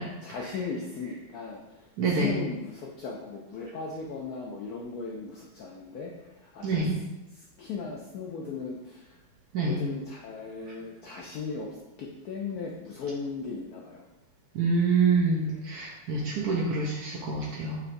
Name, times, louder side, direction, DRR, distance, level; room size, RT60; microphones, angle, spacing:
voice 1, 0.2-6.9 7.3-9.2 9.6-11.7 12.0-14.0, left 4 dB, 80° left, -2 dB, 0.8 m, -37 dB
voice 2, 2.0-2.4 6.6-7.0 9.5-9.8 14.5-17.8, right 4 dB, 70° right, -2 dB, 1.0 m, -26 dB
5.7 x 3.2 x 2.6 m, 1.0 s
omnidirectional pair, 2.2 m